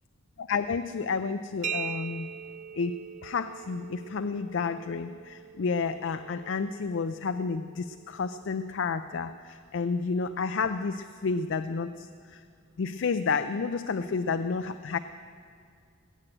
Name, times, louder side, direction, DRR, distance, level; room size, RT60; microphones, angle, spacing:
voice 1, 0.4-2.3 2.7-12.4 12.8-15.0, left 5 dB, 65° left, 10 dB, 0.4 m, -31 dB
sound 1, 1.6-9.2, right 8 dB, 35° right, 0.3 m, -42 dB
19.0 x 7.8 x 8.9 m, 2.2 s
head